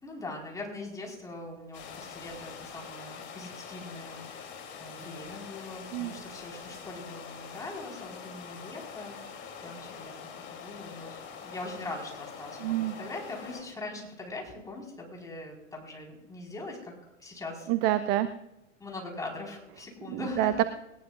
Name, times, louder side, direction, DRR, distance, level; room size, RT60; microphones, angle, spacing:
voice 1, 0.0-4.5 4.8-16.9 17.2-17.7 18.8-20.7, left 2 dB, 10° left, 0 dB, 4.5 m, -42 dB
sound 1, 1.7-13.6, left 6 dB, 30° left, 3.0 m, -44 dB
voice 2, 12.6-12.9 17.7-18.3 20.1-20.6, right 14 dB, 30° right, 13 dB, 0.6 m, -27 dB
20.0 x 19.0 x 2.5 m, 0.91 s
figure-of-eight pair, 105°, 36 cm